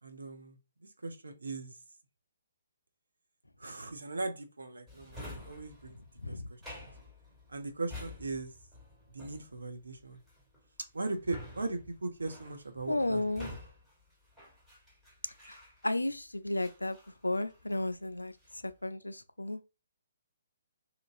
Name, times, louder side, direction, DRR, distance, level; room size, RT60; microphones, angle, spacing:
voice 1, 0.0-1.8 3.6-6.9 7.5-8.5 9.1-10.2 10.9-13.2 13.5-13.6, right 2 dB, 70° right, 0.6 m, -39 dB
Drawer open or close, 4.9-16.1 16.6-17.9 18.2-18.7, left 1 dB, 10° right, 1.3 m, -50 dB
voice 2, 12.9-13.5 15.5-15.6 15.8-17.0 17.2-18.3 18.6-19.6, left 2 dB, 80° left, 0.3 m, -33 dB
2.8 x 2.6 x 2.4 m
figure-of-eight pair, 130°, 0 cm